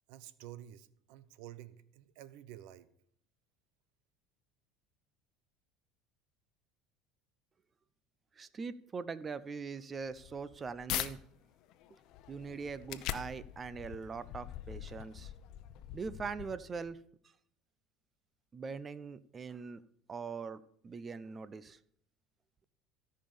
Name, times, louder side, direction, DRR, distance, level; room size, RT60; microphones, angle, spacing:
voice 1, 0.1-2.9, right 12 dB, 75° right, 16 dB, 0.8 m, -51 dB
voice 2, 8.4-11.2 11.9-12.0 12.3-15.3 15.9-17.0 18.5-19.8 20.1-21.8, right 5 dB, 25° right, 17 dB, 0.6 m, -42 dB
sound 1, 10.1-11.1 11.6-16.9, left 13 dB, 60° left, 0.8 m, -43 dB
13.5 x 5.5 x 6.9 m, 0.64 s
supercardioid pair, 120°, 0 cm